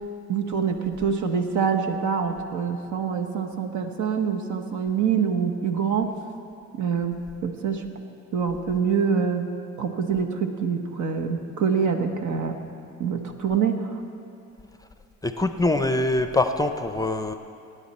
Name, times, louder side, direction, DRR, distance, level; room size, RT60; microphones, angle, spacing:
voice 1, 0.3-6.2 6.8-7.9 8.3-9.5 9.8-12.6 13.0-14.0, right 6 dB, 75° right, 6 dB, 1.2 m, -25 dB
voice 2, 15.2-17.3, left 2 dB, 10° left, 8 dB, 0.6 m, -23 dB
19.5 x 9.8 x 4.3 m, 2.6 s
cardioid pair, 90°, 30 cm